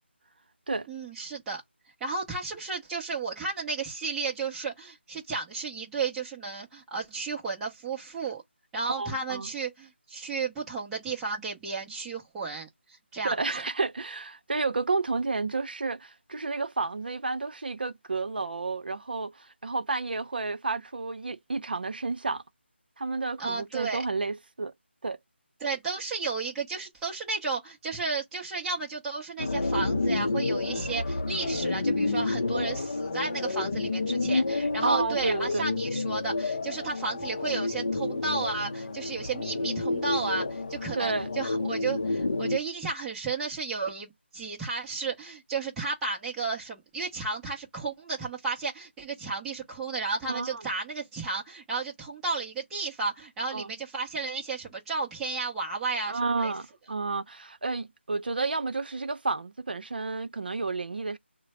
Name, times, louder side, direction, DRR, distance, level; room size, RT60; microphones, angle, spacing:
voice 1, 0.9-1.6 2.0-8.4 8.7-13.6 23.4-24.0 25.6-56.5, right 4 dB, 5° right, 0.6 m, -33 dB
voice 2, 9.0-9.5 13.2-22.4 23.0-24.7 25.0-25.2 34.8-35.7 40.9-41.3 50.3-50.6 53.5-53.7 56.1-61.2, right 3 dB, 50° right, 0.7 m, -31 dB
sound 1, 29.4-42.6, left 3 dB, 45° left, 0.6 m, -29 dB
3.9 x 2.1 x 3.1 m
figure-of-eight pair, 175°, 6 cm